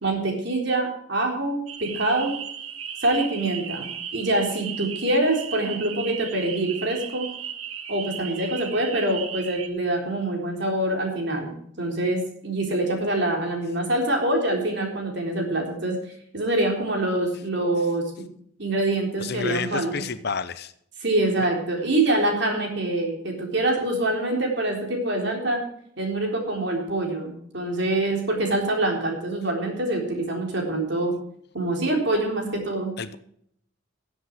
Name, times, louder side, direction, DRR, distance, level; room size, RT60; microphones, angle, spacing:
voice 1, 0.0-2.3 3.0-7.3 7.9-16.0 16.3-18.3 18.6-19.9 21.0-25.6 26.0-31.1 31.5-32.9, right 2 dB, 55° right, 1 dB, 3.8 m, -25 dB
sound 1, 1.7-9.7, right 8 dB, 80° right, 1.4 m, -36 dB
voice 2, 19.2-20.7 33.0-33.2, left 5 dB, 50° left, 13 dB, 0.7 m, -30 dB
16.0 x 8.3 x 4.7 m, 0.69 s
head